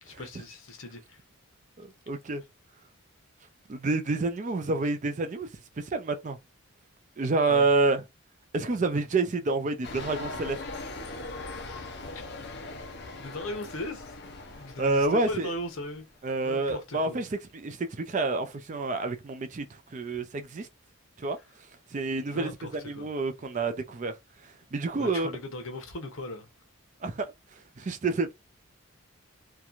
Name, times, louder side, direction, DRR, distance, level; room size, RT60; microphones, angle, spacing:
voice 1, 0.0-1.2 7.5-7.7 12.1-12.2 13.1-14.2 14.5-16.1 16.4-17.2 22.3-23.1 25.0-26.5, left 1 dB, 70° left, 0.8 m, -38 dB
voice 2, 1.8-2.4 3.7-5.5 5.8-6.4 7.2-8.0 8.5-10.6 14.8-15.5 16.2-17.3 17.5-19.6 19.9-20.7 21.2-21.4 21.9-24.1 24.7-25.3 27.0-27.3 27.8-28.3, right 3 dB, 35° right, 0.4 m, -28 dB
sound 1, 9.8-16.1, left 2 dB, 50° left, 0.5 m, -40 dB
2.9 x 2.2 x 2.4 m
head